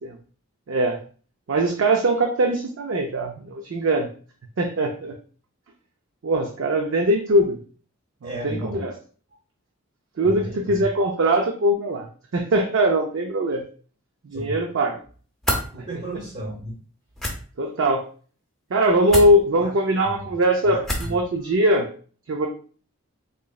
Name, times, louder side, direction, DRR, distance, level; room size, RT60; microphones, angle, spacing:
voice 1, 0.7-1.0 1.5-4.1 4.6-5.2 6.2-7.6 8.2-8.9 10.2-12.1 12.3-13.6 14.2-15.0 17.6-18.0 18.7-21.9 22.3-22.5, right 1 dB, 65° right, 2 dB, 0.4 m, -21 dB
voice 2, 8.2-8.8 10.2-10.9 14.3-14.6 15.7-16.8 19.5-19.7 20.0-20.2 20.6-21.1, right 1 dB, 35° right, -4 dB, 0.7 m, -34 dB
sound 1, 15.4-15.7 17.1-17.3 19.1-19.3 20.8-21.2, left 1 dB, ahead, 0.5 m, -25 dB
3.8 x 3.0 x 2.3 m, 0.42 s
head